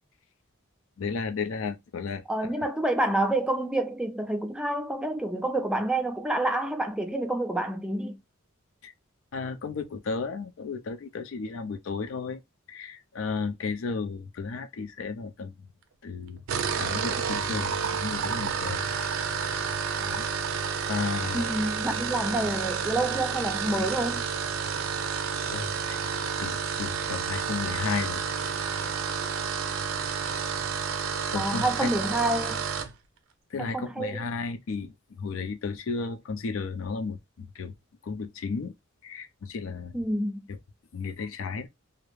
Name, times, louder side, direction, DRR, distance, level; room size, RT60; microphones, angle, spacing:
voice 1, 1.0-2.5 8.8-8.9 9.3-12.4 12.7-15.5 16.0-16.4 16.8-18.8 20.1-20.3 20.9-21.5 25.5-26.0 26.4-28.2 31.3-31.9 33.5-34.9 35.2-37.7 38.1-38.7 39.0-39.9 40.9-41.7, left 4 dB, 70° left, 0.4 m, -33 dB
voice 2, 2.3-8.2 21.3-24.2 31.3-32.6 33.6-34.3 39.9-40.4, right 1 dB, 5° right, 0.4 m, -28 dB
sound 1, 16.4-32.9, right 6 dB, 70° right, 0.4 m, -30 dB
2.4 x 2.0 x 3.0 m
head